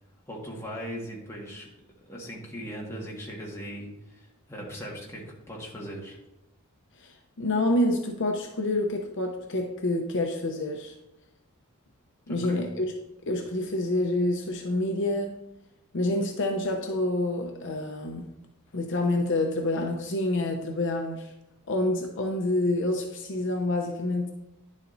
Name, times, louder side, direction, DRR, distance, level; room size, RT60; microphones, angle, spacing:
voice 1, 0.3-1.7 2.1-6.2 12.3-12.6, equal, 10° left, -3 dB, 1.6 m, -39 dB
voice 2, 7.0-10.9 12.3-12.9 13.3-15.3 15.9-18.3 18.7-21.3 21.7-24.3, left 1 dB, 55° left, 3 dB, 0.7 m, -27 dB
10.5 x 7.3 x 2.6 m, 0.91 s
head